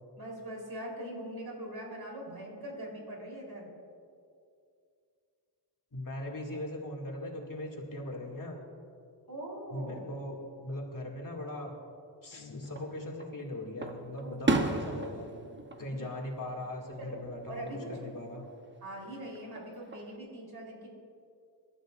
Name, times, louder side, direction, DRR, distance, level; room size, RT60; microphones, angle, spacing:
voice 1, 0.2-3.7 9.3-10.1 14.2-15.0 15.9-16.1 17.0-17.2 17.5-17.9 18.8-20.9, right 1 dB, 55° right, -2 dB, 3.8 m, -42 dB
voice 2, 5.9-8.6 9.7-11.7 12.2-15.3 15.8-18.4, left 1 dB, 45° left, -2 dB, 2.4 m, -39 dB
Guitar, 12.3-13.5, left 4 dB, 80° left, 1.3 m, -47 dB
Fireworks, 12.6-13.3 13.8-16.9 17.3-17.8 19.4-20.2, right 2 dB, 25° right, 0.9 m, -34 dB
27.5 x 12.5 x 2.5 m, 2.4 s
wide cardioid pair, 110°, 44 cm